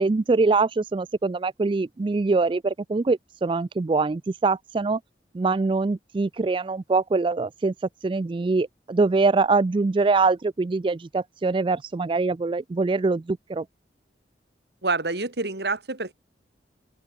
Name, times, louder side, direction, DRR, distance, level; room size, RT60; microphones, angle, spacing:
voice 1, 0.0-5.0 5.3-7.7 8.0-13.6, right 3 dB, 30° right, 0.3 m, -23 dB
voice 2, 14.8-16.1, right 3 dB, 65° right, 2.1 m, -27 dB
open air
head